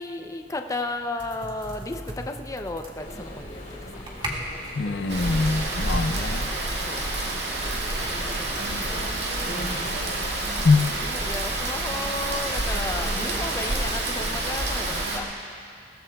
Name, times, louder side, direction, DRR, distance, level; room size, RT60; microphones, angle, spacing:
voice 1, 0.0-4.1 6.1-7.1 8.2-9.6 10.3-10.7 11.0-15.3, left 2 dB, 20° left, 4 dB, 0.6 m, -35 dB
sound 1, 1.2-13.4, right 1 dB, 30° right, 2.0 m, -43 dB
sound 2, 3.0-14.5, equal, 50° left, 3.3 m, -38 dB
voice 2, 4.7-6.5 10.5-10.8, left 3 dB, 75° left, 8 dB, 0.6 m, -23 dB
Rain, 5.1-15.2, right 2 dB, 70° right, 2.1 m, -28 dB
22.0 x 17.5 x 2.3 m, 2.4 s
head